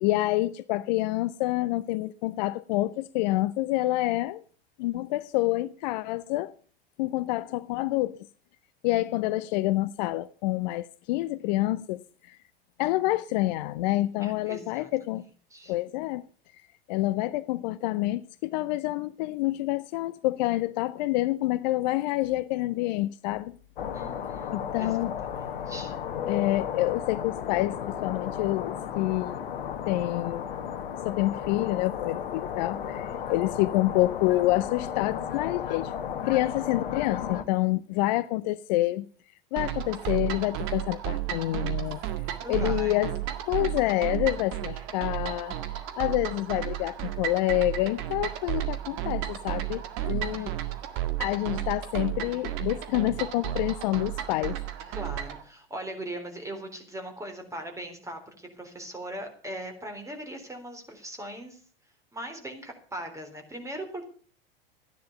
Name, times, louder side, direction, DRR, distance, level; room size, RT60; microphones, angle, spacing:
voice 1, 0.0-4.4 4.8-6.5 7.0-8.3 8.8-12.4 12.8-15.2 15.7-16.2 16.9-23.6 24.5-25.1 26.2-29.4 29.9-30.5 31.0-35.9 36.2-39.1 39.5-42.0 42.5-43.2 43.5-45.6 46.0-50.5 51.2-54.6, left 17 dB, 50° left, 0.6 m, -27 dB
voice 2, 14.2-15.2 15.5-15.7 23.9-25.0 25.3-25.9 33.1-33.4 42.4-42.9 50.0-50.6 54.9-61.6 62.1-64.1, right 1 dB, 10° right, 3.8 m, -40 dB
sound 1, 23.8-37.4, left 8 dB, 70° left, 1.3 m, -34 dB
sound 2, 39.6-55.4, right 13 dB, 45° right, 1.8 m, -33 dB
13.5 x 10.5 x 6.8 m
figure-of-eight pair, 90°, 29 cm